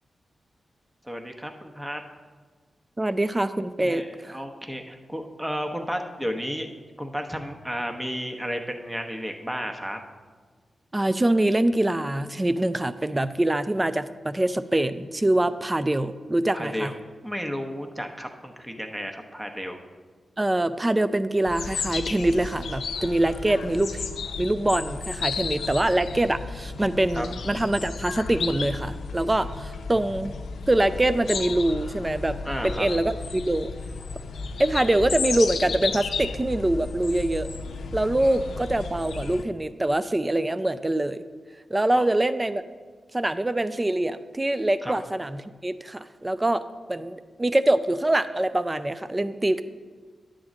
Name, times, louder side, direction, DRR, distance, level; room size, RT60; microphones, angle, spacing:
voice 1, 1.0-2.0 3.8-6.7 7.0-10.0 16.5-17.0 17.2-19.8 27.1-27.3 32.4-32.9 38.2-38.6 41.9-42.1 44.8-44.9, equal, 5° right, 4 dB, 0.9 m, -33 dB
voice 2, 3.0-4.4 10.9-16.9 20.4-24.0 24.4-30.3 30.7-32.3 32.6-33.7 34.6-37.5 37.9-41.2 41.7-42.6 43.1-46.6 46.9-49.6, right 1 dB, 20° right, 13 dB, 0.4 m, -24 dB
sound 1, 21.5-39.4, left 5 dB, 85° left, 0.5 m, -33 dB
10.0 x 3.8 x 7.2 m, 1.5 s
cardioid pair, 60°, 0 cm